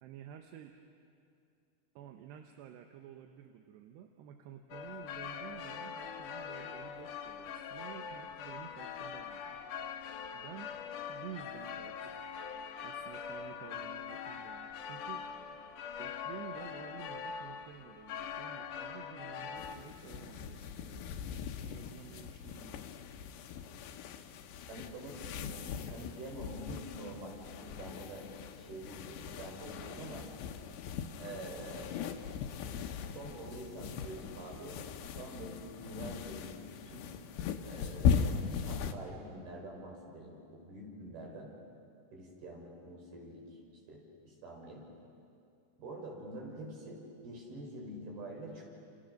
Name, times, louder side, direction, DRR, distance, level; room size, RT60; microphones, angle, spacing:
voice 1, 0.0-0.7 2.0-9.6 10.3-10.7 11.1-12.3 12.8-15.3 16.0-21.1 21.4-22.9, right 9 dB, 85° right, 4 dB, 3.2 m, -51 dB
sound 1, 4.7-19.8, left 7 dB, 65° left, 2.3 m, -43 dB
sound 2, 19.6-38.9, left 7 dB, 85° left, 3.3 m, -39 dB
voice 2, 24.7-28.3 28.6-30.3 31.2-32.0 32.4-32.9 33.2-34.8 35.1-37.1 37.7-41.5 42.1-43.4 43.9-44.8 45.8-48.6, right 1 dB, 65° right, -1 dB, 6.8 m, -46 dB
29.5 x 29.0 x 6.6 m, 2.5 s
omnidirectional pair, 4.9 m